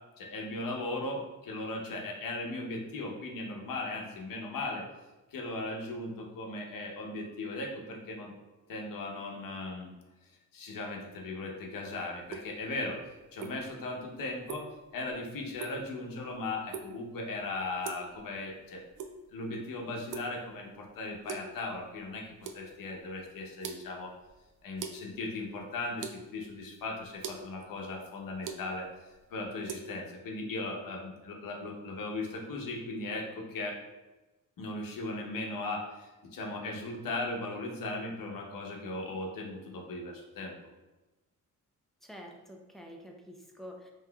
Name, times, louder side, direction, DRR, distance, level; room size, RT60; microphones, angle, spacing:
voice 1, 0.2-4.8 5.3-8.3 8.7-9.9 10.5-13.0 13.3-14.7 14.9-18.8 19.3-24.1 24.6-28.9 29.3-33.8 34.6-40.5, left 2 dB, 85° left, 0 dB, 0.9 m, -37 dB
sound 1, 12.2-29.8, right 6 dB, 70° right, 0.5 m, -46 dB
voice 2, 42.0-43.9, equal, ahead, 0 dB, 0.5 m, -48 dB
5.6 x 3.1 x 2.3 m, 1.1 s
wide cardioid pair, 140°, 33 cm